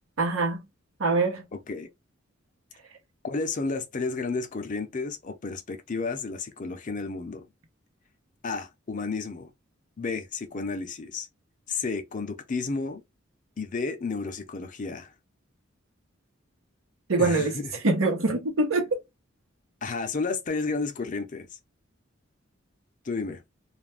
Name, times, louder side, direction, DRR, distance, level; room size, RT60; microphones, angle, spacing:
voice 1, 0.2-0.6 1.0-1.5 17.1-17.6 17.8-19.0, right 3 dB, 90° right, 0.9 m, -24 dB
voice 2, 1.5-1.9 3.2-7.5 8.4-9.5 10.0-11.3 11.7-13.0 13.6-15.1 17.2-17.7 19.8-21.5 23.0-23.4, left 4 dB, 40° left, 0.5 m, -32 dB
2.4 x 2.1 x 3.3 m
head